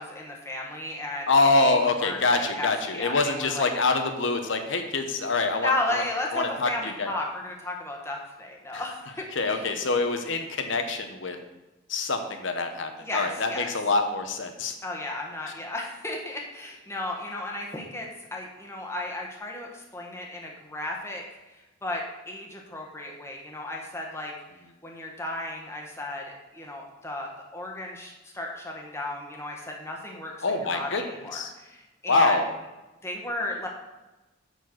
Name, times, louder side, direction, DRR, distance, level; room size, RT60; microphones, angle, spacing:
voice 1, 0.0-3.7 5.6-9.7 13.0-13.7 14.8-21.2 21.5-24.3 24.8-32.4 33.0-33.7, left 2 dB, 15° left, -1 dB, 1.3 m, -34 dB
voice 2, 1.3-6.0 6.3-7.1 8.7-8.8 9.3-11.4 11.9-14.7 30.4-31.0 31.3-31.5 32.1-32.4, left 3 dB, 65° left, 6 dB, 1.0 m, -25 dB
9.1 x 4.5 x 6.3 m, 1.1 s
head